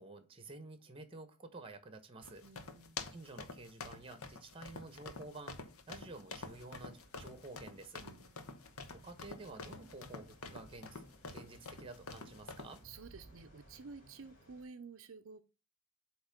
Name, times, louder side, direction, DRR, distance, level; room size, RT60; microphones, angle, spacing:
voice 1, 0.0-2.4 3.1-8.0 8.9-12.8, right 2 dB, 25° right, 9 dB, 1.0 m, -51 dB
sound 1, 2.2-12.8, left 4 dB, 75° left, 1.0 m, -48 dB
voice 2, 2.4-3.1 8.0-8.6 12.8-15.4, right 4 dB, 60° right, 8 dB, 0.5 m, -52 dB
sound 2, 6.4-14.7, right 1 dB, 35° left, 3.1 m, -62 dB
8.0 x 3.1 x 5.0 m, 0.31 s
head